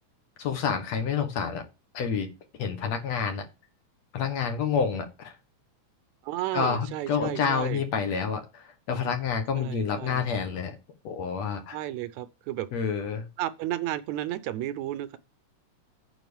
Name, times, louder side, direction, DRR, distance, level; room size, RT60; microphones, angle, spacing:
voice 1, 0.4-1.6 1.9-2.3 2.6-3.5 4.1-5.3 6.5-10.8 11.0-11.8 12.7-13.3, left 6 dB, 65° left, 2.6 m, -28 dB
voice 2, 6.2-7.8 9.5-10.2 11.7-12.7 13.4-15.2, right 13 dB, 75° right, 1.9 m, -33 dB
9.2 x 4.6 x 7.0 m
omnidirectional pair, 3.5 m